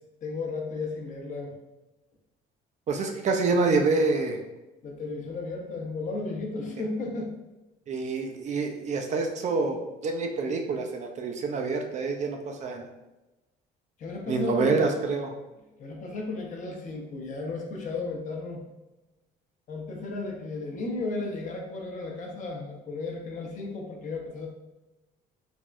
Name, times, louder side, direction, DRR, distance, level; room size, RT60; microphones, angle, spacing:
voice 1, 0.2-1.5 4.8-7.3 14.0-14.8 15.8-18.6 19.7-24.5, left 3 dB, 50° left, 0 dB, 0.7 m, -34 dB
voice 2, 2.9-4.4 7.9-12.8 14.3-15.3, right 4 dB, 45° right, 3 dB, 0.4 m, -27 dB
3.4 x 2.2 x 2.5 m, 1.0 s
cardioid pair, 110°, 17 cm